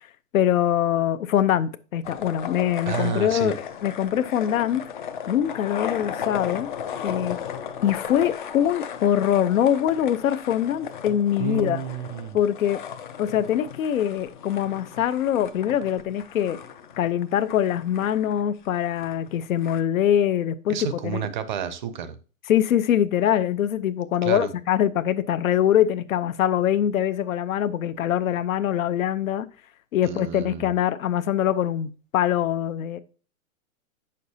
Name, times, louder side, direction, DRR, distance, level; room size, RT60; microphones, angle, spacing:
voice 1, 0.3-4.9 5.3-6.7 7.0-7.4 7.8-11.8 12.3-12.8 13.2-16.6 17.0-20.8 21.0-21.2 22.5-29.5 29.9-33.0, left 10 dB, 70° left, 0.8 m, -23 dB
sound 1, 2.0-19.8, left 8 dB, 35° left, 0.5 m, -36 dB
voice 2, 2.9-3.5 11.4-12.4 20.7-22.2 24.2-24.5 30.0-30.7, right 8 dB, 35° right, 0.6 m, -30 dB
8.6 x 6.6 x 2.7 m
hypercardioid pair, 165°, 42 cm